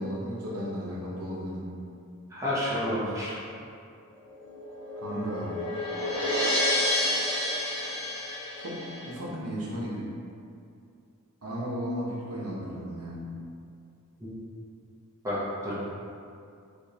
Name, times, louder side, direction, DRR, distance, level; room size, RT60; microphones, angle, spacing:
voice 1, 0.0-1.7 5.0-5.6 8.6-10.1 11.4-13.3 15.7-15.8, equal, 90° right, -4 dB, 0.8 m, -34 dB
voice 2, 2.3-3.4 14.2-14.3 15.2-15.7, left 1 dB, 15° right, -9 dB, 0.7 m, -30 dB
sound 1, 4.3-9.1, left 1 dB, 30° left, 1.2 m, -29 dB
4.8 x 2.4 x 2.7 m, 2.4 s
head